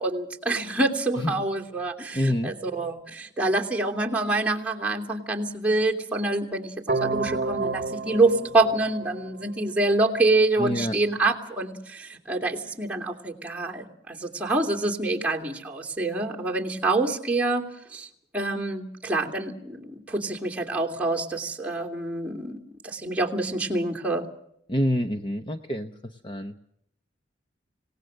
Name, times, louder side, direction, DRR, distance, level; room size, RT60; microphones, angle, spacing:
voice 1, 0.0-17.6 17.9-18.1 18.3-22.6 22.8-24.3, right 2 dB, 5° right, -1 dB, 2.9 m, -26 dB
voice 2, 2.1-2.5 10.6-11.0 24.7-26.6, left 1 dB, 25° left, 7 dB, 0.9 m, -27 dB
sound 1, 6.9-9.9, right 3 dB, 45° right, 1.2 m, -30 dB
26.5 x 18.5 x 6.4 m, 0.72 s
head